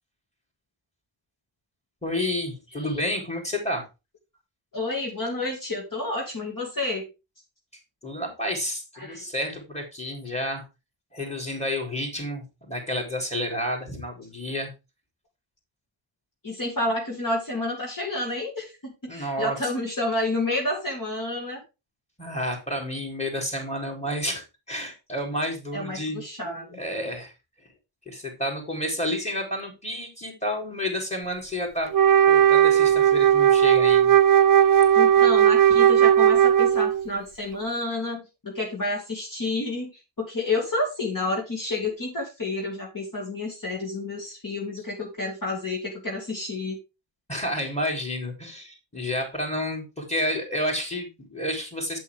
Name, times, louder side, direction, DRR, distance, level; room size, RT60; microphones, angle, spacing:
voice 1, 2.0-3.9 8.0-10.6 11.1-14.7 19.1-19.6 22.2-27.3 28.1-31.9 32.3-34.2 47.3-52.0, left 1 dB, 15° left, 2 dB, 3.6 m, -30 dB
voice 2, 4.7-7.1 9.0-9.2 16.4-21.6 25.7-26.8 34.9-39.9 40.2-46.8, left 2 dB, 45° left, -1 dB, 2.5 m, -30 dB
Wind instrument woodwind instrument, 31.9-37.1, right 9 dB, 45° right, 0.5 m, -17 dB
8.2 x 8.2 x 3.7 m, 0.27 s
wide cardioid pair, 100°, 47 cm